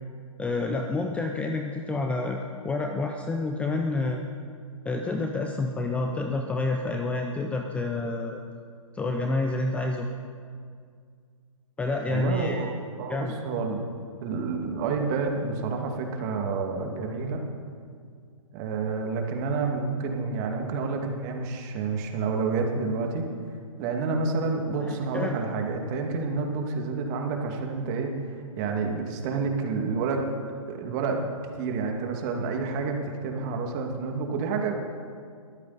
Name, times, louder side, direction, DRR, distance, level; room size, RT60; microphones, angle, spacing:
voice 1, 0.4-2.4 2.6-4.2 4.8-8.4 8.9-10.1 11.8-12.6 13.1-13.3 24.7-25.3, left 2 dB, 5° left, 3 dB, 0.6 m, -28 dB
voice 2, 12.1-12.7 13.0-13.9 14.2-17.4 18.5-23.3 23.8-30.2 30.7-31.3 31.6-34.8, right 4 dB, 30° right, 3 dB, 2.3 m, -29 dB
22.0 x 14.0 x 4.2 m, 2.1 s
hypercardioid pair, 140°, 18 cm